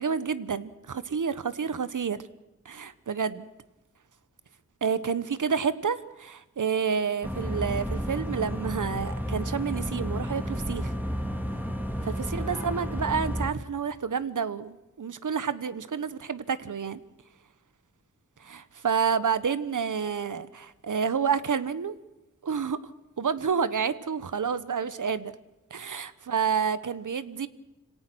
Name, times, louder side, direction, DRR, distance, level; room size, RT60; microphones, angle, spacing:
voice 1, 0.0-2.2 2.6-3.5 4.8-10.9 12.0-17.0 18.4-21.9 22.4-22.9 23.2-25.3 25.7-27.5, right 6 dB, 80° right, 15 dB, 1.1 m, -29 dB
sound 1, 7.2-13.5, equal, 5° right, 2.2 m, -31 dB
26.0 x 18.0 x 6.2 m, 1.0 s
wide cardioid pair, 70°, 30 cm